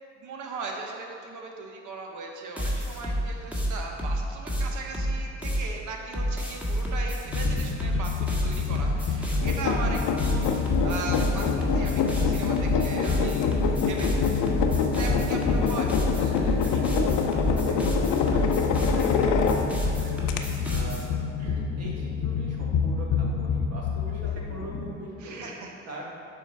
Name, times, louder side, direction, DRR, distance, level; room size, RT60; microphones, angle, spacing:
voice 1, 0.2-14.2 15.0-16.0 16.7-16.8 25.2-25.7, right 3 dB, 75° right, 1 dB, 1.0 m, -38 dB
sound 1, 2.6-5.7 6.1-21.0, equal, 5° right, 1.5 m, -29 dB
sound 2, 7.3-24.9, left 6 dB, 55° left, 0.8 m, -29 dB
sound 3, 9.4-19.9 20.3-20.4, left 6 dB, 90° left, 0.6 m, -27 dB
voice 2, 14.8-15.1 16.2-20.2 20.7-21.0 21.4-25.5 25.9-26.0, right 1 dB, 55° right, -3 dB, 1.7 m, -42 dB
7.0 x 3.9 x 5.8 m, 2.5 s
cardioid pair, 90°, 30 cm